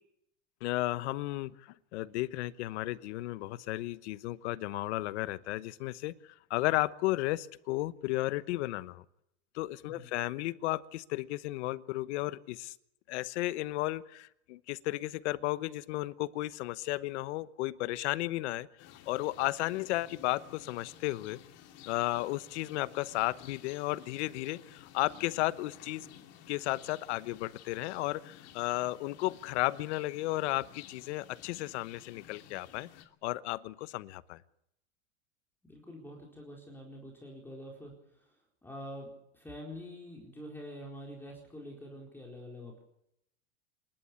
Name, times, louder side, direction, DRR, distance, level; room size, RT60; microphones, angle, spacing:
voice 1, 0.6-1.5 1.9-6.1 6.5-9.0 9.5-12.7 13.1-18.7 19.1-21.4 21.9-26.1 26.5-32.9 33.2-34.4, left 18 dB, 70° left, 16 dB, 1.1 m, -34 dB
sound 1, 18.8-33.0, left 10 dB, 45° left, 2.6 m, -54 dB
voice 2, 35.6-42.8, equal, 5° left, -1 dB, 4.4 m, -46 dB
27.5 x 12.0 x 8.5 m, 0.79 s
supercardioid pair, 135°, 36 cm